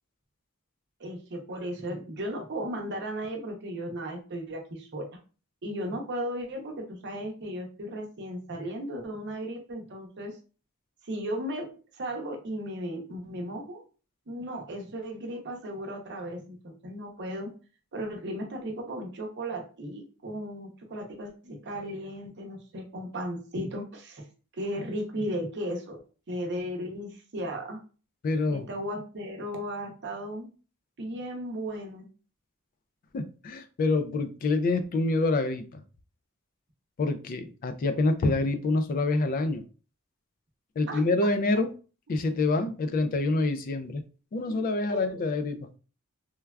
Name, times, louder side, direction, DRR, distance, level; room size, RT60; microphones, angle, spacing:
voice 1, 1.0-5.1 5.6-10.4 11.0-11.7 11.9-13.8 14.3-17.5 17.9-24.3 24.6-26.0 26.3-27.8 28.5-30.5 31.0-32.1 40.9-41.0 44.4-44.6 44.9-45.0, equal, 55° right, 0.7 m, -35 dB
voice 2, 28.2-28.7 33.1-35.8 37.0-39.6 40.8-41.7 42.1-44.0 44.3-45.7, left 2 dB, 40° left, 0.3 m, -26 dB
3.2 x 2.2 x 2.2 m
head